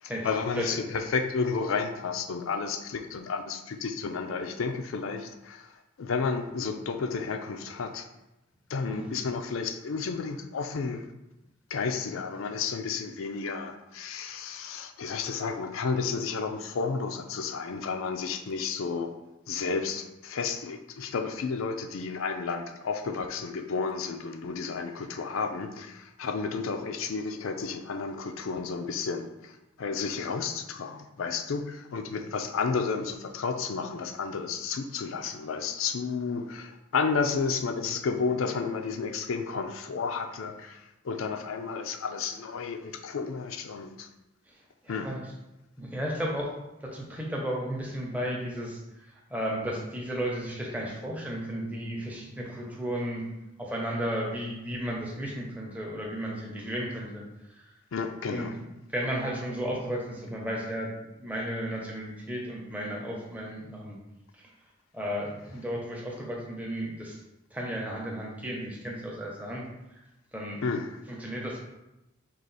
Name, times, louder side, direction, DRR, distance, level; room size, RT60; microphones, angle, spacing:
voice 1, 0.0-8.1 8.7-11.1 11.7-19.1 19.5-44.1 44.9-45.1 57.9-58.6 70.6-71.0, left 5 dB, 75° left, 7 dB, 0.4 m, -32 dB
voice 2, 0.5-0.9 8.9-9.1 44.8-45.2 45.8-46.5 46.8-48.8 49.3-53.2 53.6-57.2 57.6-57.7 58.3-64.0 64.3-64.4 64.9-67.2 67.5-69.7 69.9-70.0 70.3-70.6 71.1-71.6, equal, 5° right, -3 dB, 0.7 m, -34 dB
4.8 x 2.4 x 4.0 m, 0.94 s
head